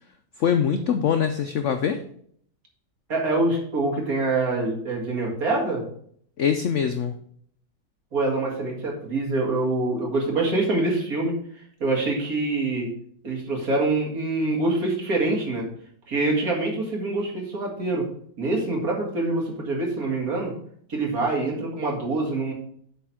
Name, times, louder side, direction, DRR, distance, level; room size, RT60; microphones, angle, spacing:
voice 1, 0.4-2.0 6.4-7.1, left 8 dB, 70° left, 7 dB, 0.7 m, -23 dB
voice 2, 3.1-5.8 8.1-11.4 11.8-12.9 13.2-15.7 16.1-18.1 18.4-20.5 20.9-22.5, right 2 dB, 55° right, -1 dB, 2.4 m, -25 dB
7.9 x 4.2 x 6.0 m, 0.63 s
omnidirectional pair, 1.9 m